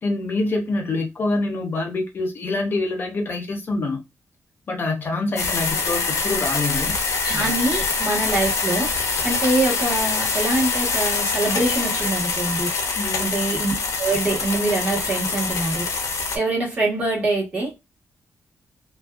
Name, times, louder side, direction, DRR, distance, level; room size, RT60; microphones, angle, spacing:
voice 1, 0.0-4.0 4.7-6.9 13.0-13.4, left 2 dB, 40° left, 0.6 m, -25 dB
sound 1, 5.4-16.4, left 4 dB, 85° left, 0.6 m, -24 dB
voice 2, 7.2-8.9 9.2-12.7 13.2-15.9 16.3-17.7, right 2 dB, 25° right, 1.1 m, -24 dB
2.5 x 2.2 x 2.3 m
wide cardioid pair, 180°, 5 cm